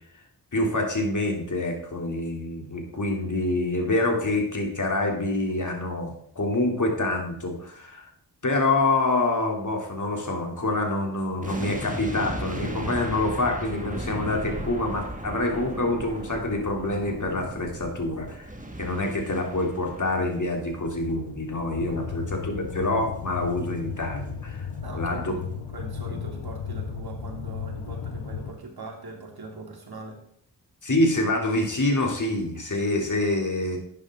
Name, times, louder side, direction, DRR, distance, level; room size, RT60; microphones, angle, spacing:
voice 1, 0.5-8.1 8.4-18.5 18.8-24.7 24.9-25.4 26.1-26.2 30.8-33.8, left 2 dB, 45° left, 1 dB, 3.4 m, -26 dB
sound 1, 11.4-24.6 24.8-25.0, right 1 dB, 20° right, 2.2 m, -37 dB
sound 2, 21.8-28.5, left 6 dB, 85° left, 1.3 m, -35 dB
voice 2, 21.9-22.3 24.8-30.2, right 2 dB, 60° right, 1 dB, 3.0 m, -41 dB
11.5 x 9.6 x 3.9 m, 0.67 s
cardioid pair, 40°, 41 cm